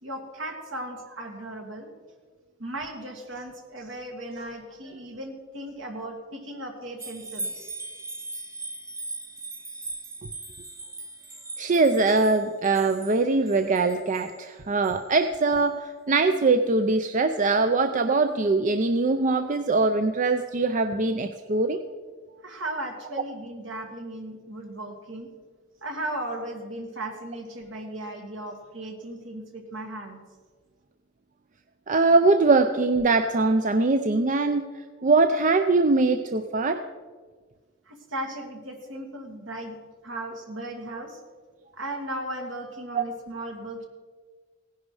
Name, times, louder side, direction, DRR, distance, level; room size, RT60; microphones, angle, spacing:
voice 1, 0.0-1.9 2.6-7.5 22.4-25.3 25.8-30.2 37.9-39.8 40.0-41.2 41.7-43.8, right 1 dB, 70° right, 2 dB, 2.4 m, -36 dB
sound 1, 7.0-14.3 14.8-15.0, right 2 dB, 15° right, 0.8 m, -39 dB
voice 2, 11.6-21.8 23.1-23.2 31.9-36.8 42.9-43.0, right 3 dB, 40° right, 8 dB, 0.5 m, -22 dB
17.0 x 10.5 x 4.8 m, 1.5 s
head